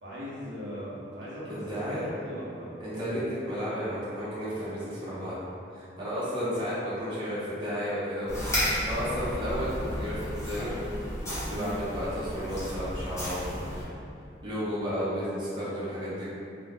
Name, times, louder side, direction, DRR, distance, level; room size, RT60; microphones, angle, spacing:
voice 1, 0.0-3.3 11.5-11.7, equal, 75° right, -8 dB, 0.7 m, -40 dB
voice 2, 1.5-2.1 2.8-5.3 5.7-8.3 8.9-10.8 11.2-13.6 14.4-16.3, equal, 25° right, -11 dB, 0.6 m, -33 dB
sound 1, 8.3-13.8, equal, 15° left, 0.7 m, -33 dB
2.3 x 2.0 x 3.3 m, 2.5 s
head